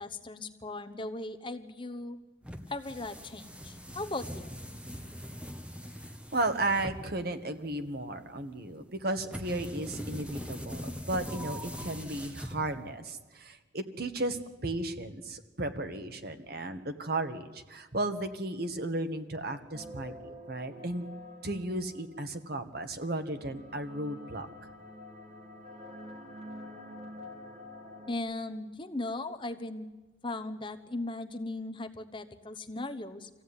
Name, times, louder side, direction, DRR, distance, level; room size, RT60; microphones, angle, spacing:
voice 1, 0.0-2.2 2.7-4.6 28.1-29.9 30.2-33.3, left 2 dB, 25° left, 8 dB, 0.9 m, -38 dB
sound 1, 2.4-13.0, equal, 5° right, 1.2 m, -42 dB
voice 2, 6.3-21.1 21.4-24.5, right 2 dB, 50° right, 8 dB, 1.5 m, -34 dB
sound 2, 19.7-22.2 23.1-28.1, left 1 dB, 35° right, 3.0 m, -47 dB
24.5 x 16.0 x 9.7 m, 1.2 s
head